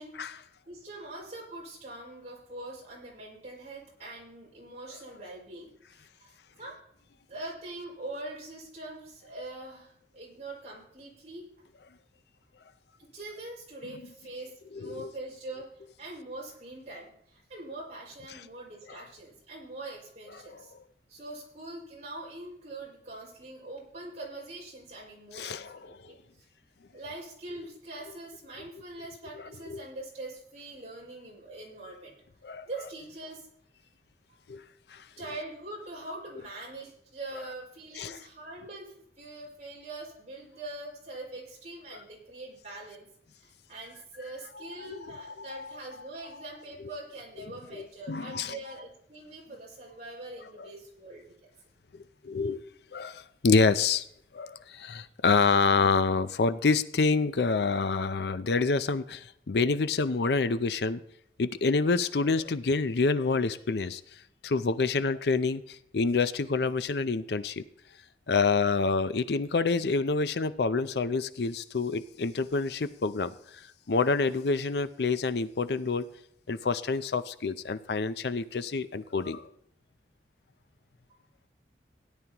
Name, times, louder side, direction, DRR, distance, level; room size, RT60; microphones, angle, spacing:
voice 1, 0.0-5.7 6.2-6.8 7.3-11.4 13.0-20.7 21.1-26.5 26.9-32.1 32.7-33.5 35.2-43.1 43.4-51.5, right 2 dB, 40° right, -4 dB, 5.5 m, -43 dB
voice 2, 14.7-15.1 18.9-19.0 20.5-20.6 25.3-26.0 29.4-29.5 29.7-29.8 32.4-32.7 34.5-34.6 34.9-35.1 38.0-38.2 44.9-45.7 47.7-48.6 50.6-50.7 52.2-52.6 52.9-54.0 54.3-61.0 61.4-67.6 68.3-76.1 76.5-79.5, left 4 dB, 70° left, 13 dB, 0.5 m, -27 dB
17.0 x 11.0 x 2.9 m, 0.72 s
head